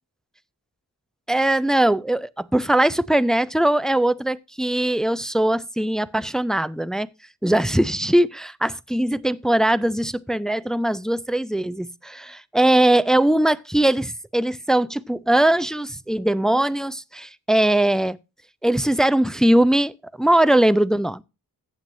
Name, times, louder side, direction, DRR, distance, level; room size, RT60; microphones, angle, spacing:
voice 1, 1.3-7.1 7.4-18.2 18.6-21.2, right 1 dB, ahead, 0.4 m, -20 dB
15.0 x 7.9 x 2.6 m
wide cardioid pair, 80°, 38 cm